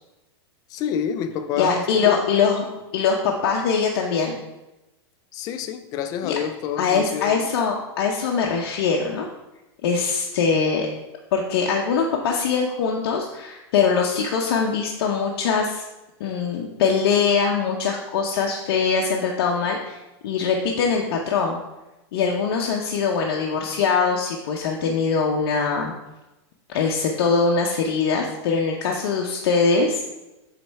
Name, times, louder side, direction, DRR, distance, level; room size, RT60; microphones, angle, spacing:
voice 1, 0.7-2.4 2.7-2.8 5.3-7.5, left 8 dB, 25° left, 8 dB, 0.4 m, -28 dB
voice 2, 1.6-2.6 2.9-4.4 6.2-6.3 6.8-9.3 9.8-10.9 11.3-15.8 16.2-21.6 22.1-25.9 26.7-30.0, left 5 dB, 55° left, 0 dB, 0.7 m, -22 dB
7.8 x 3.1 x 4.6 m, 1.0 s
supercardioid pair, 160°, 14 cm